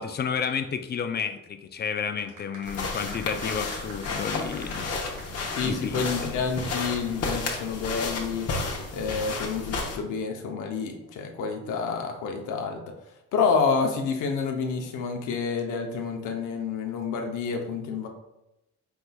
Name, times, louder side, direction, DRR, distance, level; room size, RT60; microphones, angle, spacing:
voice 1, 0.0-4.9 5.3-6.4, left 6 dB, 35° left, 9 dB, 0.4 m, -31 dB
sound 1, 2.2-6.7 6.9-7.0, right 2 dB, 70° right, 1.3 m, -44 dB
sound 2, 2.7-10.0, left 3 dB, 55° left, 0.9 m, -32 dB
voice 2, 5.5-8.5 8.9-12.8 13.3-18.1, left 5 dB, 85° left, 3 dB, 0.7 m, -28 dB
4.6 x 4.0 x 2.2 m, 0.93 s
cardioid pair, 90°, 30 cm